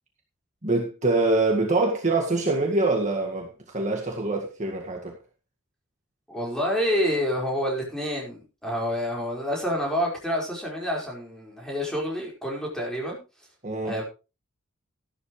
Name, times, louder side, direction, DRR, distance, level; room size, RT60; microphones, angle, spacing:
voice 1, 0.6-5.2 13.6-14.0, right 2 dB, 35° right, 1.9 m, -25 dB
voice 2, 6.3-13.2 13.8-14.0, equal, 5° left, 4.9 m, -28 dB
13.5 x 12.0 x 3.2 m
head